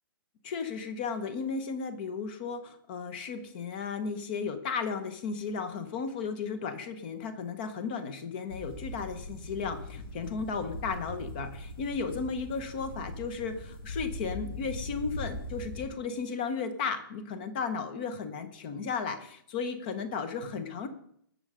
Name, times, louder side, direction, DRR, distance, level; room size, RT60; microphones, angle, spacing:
voice 1, 0.4-20.9, left 5 dB, 25° left, 10 dB, 1.0 m, -34 dB
sound 1, 8.5-15.9, equal, 90° left, 5.3 m, -40 dB
19.0 x 6.7 x 5.0 m, 0.67 s
hypercardioid pair, 180°, 12 cm